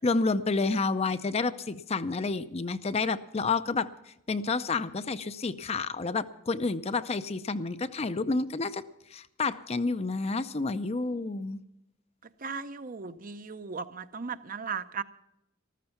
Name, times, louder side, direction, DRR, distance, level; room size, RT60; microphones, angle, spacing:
voice 1, 0.0-3.9 4.3-8.8 9.1-11.6, left 3 dB, 30° left, 12 dB, 0.5 m, -29 dB
voice 2, 12.4-15.0, right 5 dB, 40° right, 12 dB, 0.6 m, -36 dB
14.0 x 13.5 x 5.8 m, 0.85 s
head